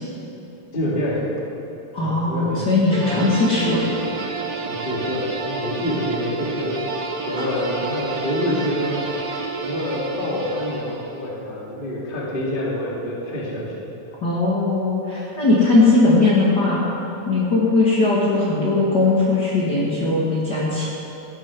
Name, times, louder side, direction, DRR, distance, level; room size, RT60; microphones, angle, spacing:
voice 1, 0.7-1.4 2.0-2.6 3.0-3.3 4.6-6.9 7.2-9.0 9.6-13.8, left 1 dB, 20° left, -5 dB, 2.1 m, -27 dB
voice 2, 1.9-4.0 7.3-7.4 14.2-16.8 17.3-20.8, left 3 dB, 40° left, -7 dB, 2.2 m, -19 dB
sound 1, 2.9-11.3, right 3 dB, 85° right, 0.8 m, -30 dB
13.5 x 10.5 x 6.1 m, 2.9 s
omnidirectional pair, 3.4 m